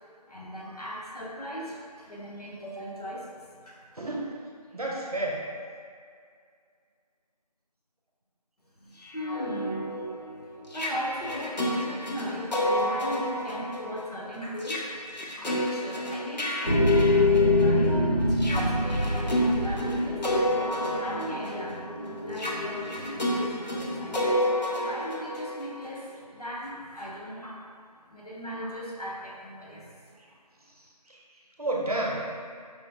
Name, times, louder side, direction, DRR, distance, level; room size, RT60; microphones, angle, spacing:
voice 1, 0.2-3.8 8.8-9.9 10.7-15.0 15.3-20.2 20.9-21.8 22.2-24.2 24.8-27.6 28.1-30.1, equal, 65° left, -5 dB, 0.9 m, -38 dB
voice 2, 3.9-4.4 4.7-5.5 30.8-32.3, right 2 dB, 60° right, -2 dB, 0.7 m, -32 dB
sound 1, 9.0-17.9 18.3-26.1, equal, 90° left, 0.7 m, -30 dB
sound 2, 16.6-24.2, left 2 dB, 40° left, 0.5 m, -26 dB
4.9 x 2.2 x 3.2 m, 2.1 s
figure-of-eight pair, 175°, 21 cm